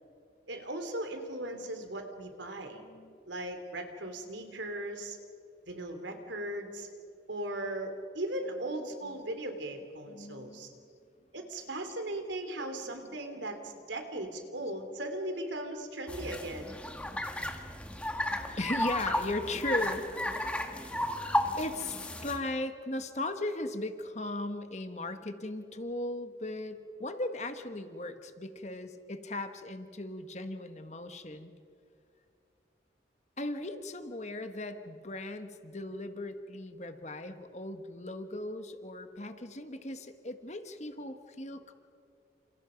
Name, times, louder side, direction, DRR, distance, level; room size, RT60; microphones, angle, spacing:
voice 1, 0.5-2.8 3.3-5.2 5.7-6.9 7.3-10.7 11.3-16.7, right 1 dB, 80° right, 6 dB, 3.4 m, -38 dB
voice 2, 2.7-3.1 10.1-10.7 18.6-20.5 21.6-31.5 33.4-41.7, left 2 dB, 40° left, 7 dB, 1.5 m, -37 dB
sound 1, 16.1-22.4, left 1 dB, 5° left, 1.7 m, -33 dB
29.5 x 28.0 x 5.3 m, 2.5 s
head